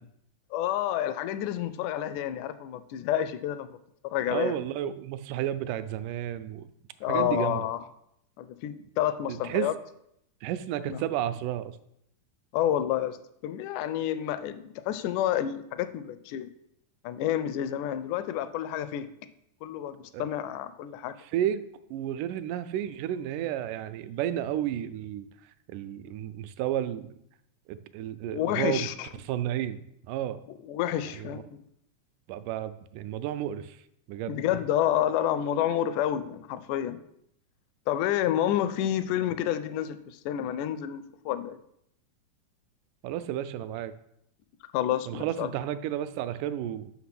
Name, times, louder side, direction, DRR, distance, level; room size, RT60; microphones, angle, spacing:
voice 1, 0.5-3.7 4.0-4.6 7.0-7.8 8.4-9.7 10.9-11.0 12.5-13.2 13.4-16.5 17.0-19.1 19.6-21.2 28.3-29.1 30.7-31.6 34.3-37.0 37.9-41.6 44.7-45.5, left 11 dB, 80° left, 12 dB, 2.0 m, -29 dB
voice 2, 4.3-6.7 7.1-7.7 9.3-9.7 10.4-11.8 20.1-20.3 21.2-21.6 21.9-25.3 25.7-27.1 27.7-28.9 29.2-30.4 31.2-31.4 32.3-33.8 34.1-34.4 43.0-43.9 45.1-46.9, right 11 dB, 85° right, 12 dB, 2.1 m, -32 dB
6.0 x 5.9 x 5.9 m, 0.75 s
omnidirectional pair, 3.7 m